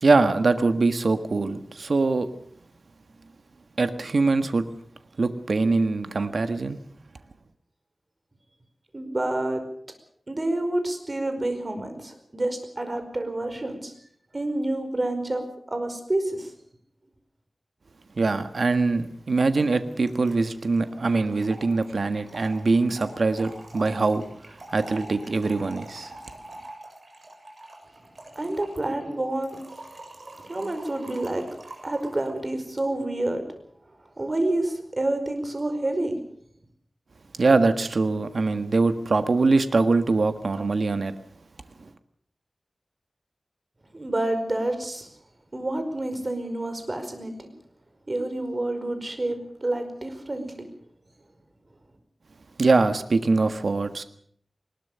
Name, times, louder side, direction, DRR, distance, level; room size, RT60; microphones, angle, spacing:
voice 1, 0.0-2.3 3.8-4.7 5.2-6.8 18.2-26.1 37.4-41.1 41.8-41.9 52.6-54.0, right 3 dB, 75° right, 1.5 m, -23 dB
voice 2, 8.9-9.6 10.3-13.9 14.3-16.5 28.3-29.6 30.5-31.4 31.8-33.4 34.2-36.2 43.9-45.1 45.5-47.5 48.1-50.7, right 1 dB, 40° right, 5.0 m, -28 dB
Trickle dribble / Fill (with liquid), 18.7-18.8 19.0-19.1 19.3-32.4, right 2 dB, 55° right, 7.2 m, -45 dB
21.0 x 20.5 x 6.9 m
wide cardioid pair, 60°, 0 cm